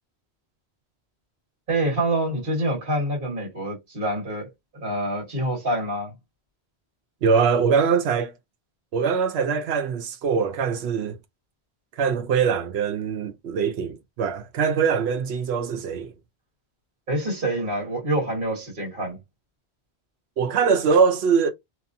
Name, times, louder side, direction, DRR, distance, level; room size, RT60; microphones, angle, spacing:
voice 1, 1.7-4.5 4.8-6.1 17.1-19.2, right 1 dB, 55° right, 1.6 m, -26 dB
voice 2, 7.2-8.3 8.9-11.2 12.0-16.1 20.4-21.5, right 6 dB, 80° right, 0.9 m, -22 dB
2.9 x 2.3 x 2.6 m
omnidirectional pair, 1.1 m